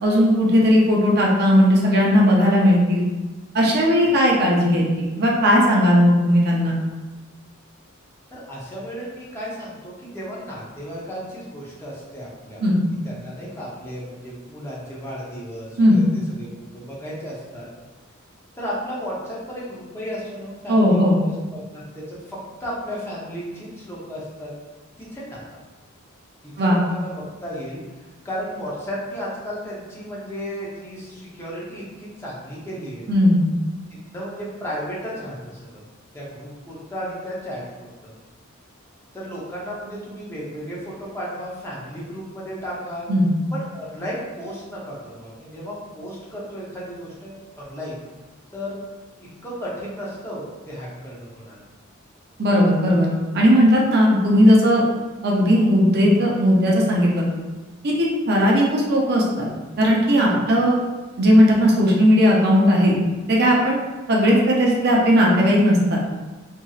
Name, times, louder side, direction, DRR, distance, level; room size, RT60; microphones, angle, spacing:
voice 1, 0.0-3.0 3.5-4.9 5.2-6.7 12.6-12.8 15.8-16.0 20.7-21.2 26.6-26.8 33.1-33.4 43.1-43.3 52.4-54.8 55.2-57.2 57.8-59.5 59.8-60.8 61.2-63.0 63.3-63.8 64.1-66.0, equal, 50° right, -2 dB, 0.5 m, -17 dB
voice 2, 8.3-12.6 13.0-16.5 16.7-17.7 18.6-24.5 25.0-25.6 26.4-27.8 28.2-33.1 34.1-35.8 36.1-37.6 38.0-38.1 39.1-43.1 43.5-48.0 48.5-48.8 49.2-51.7 60.3-60.4, equal, 10° left, -7 dB, 0.7 m, -34 dB
2.8 x 2.7 x 2.3 m, 1.2 s
head